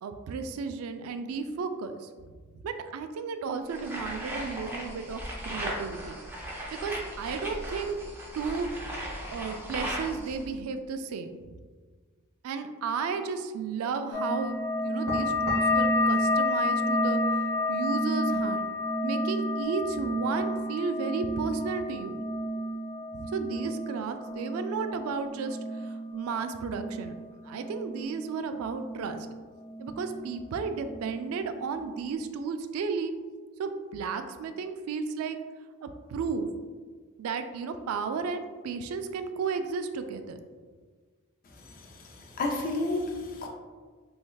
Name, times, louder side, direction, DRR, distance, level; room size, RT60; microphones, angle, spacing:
voice 1, 0.0-2.1 2.5-6.2 6.8-8.0 8.4-8.7 9.3-11.4 12.4-17.2 17.7-18.7 19.0-22.2 23.1-27.1 27.4-29.2 29.8-33.1 33.6-35.4 35.8-36.5 37.2-40.4, right 5 dB, 85° right, 12 dB, 0.3 m, -33 dB
sound 1, 3.7-10.4, equal, 10° right, 0.5 m, -37 dB
sound 2, 14.1-29.3 29.5-30.3 30.6-31.4 31.7-32.1, left 1 dB, 85° left, 1.1 m, -30 dB
voice 2, 41.7-43.5, left 2 dB, 40° left, 2 dB, 0.4 m, -32 dB
3.2 x 3.1 x 2.2 m, 1.5 s
head